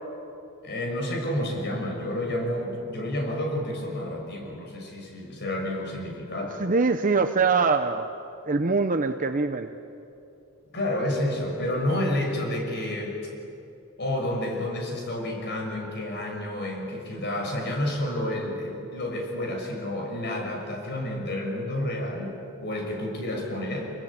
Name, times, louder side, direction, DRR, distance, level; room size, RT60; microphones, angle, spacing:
voice 1, 0.6-6.6 10.7-13.3 14.0-22.3 22.6-23.9, left 1 dB, 50° left, 2 dB, 6.2 m, -30 dB
voice 2, 6.6-8.1 8.5-9.7, right 4 dB, 40° right, 6 dB, 0.8 m, -23 dB
27.0 x 22.5 x 8.7 m, 2.7 s
head